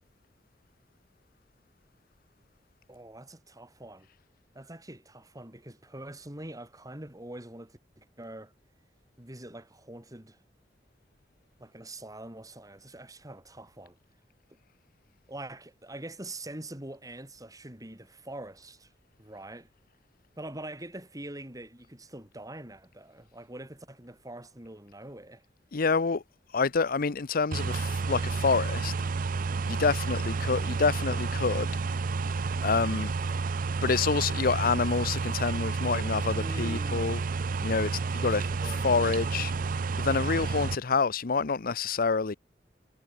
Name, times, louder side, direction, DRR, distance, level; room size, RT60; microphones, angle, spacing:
voice 1, 2.9-4.1 4.5-8.5 9.2-10.4 11.6-14.0 15.3-18.9 19.2-19.7 20.4-25.4 36.3-37.2 38.2-38.9, right 1 dB, 20° right, 4.4 m, -44 dB
voice 2, 25.7-26.2 26.5-28.9 29.7-31.7 32.6-33.1 33.8-37.2 37.6-39.5 40.0-42.3, left 4 dB, 55° left, 0.7 m, -27 dB
sound 1, 27.5-40.7, right 4 dB, 50° right, 0.5 m, -30 dB
head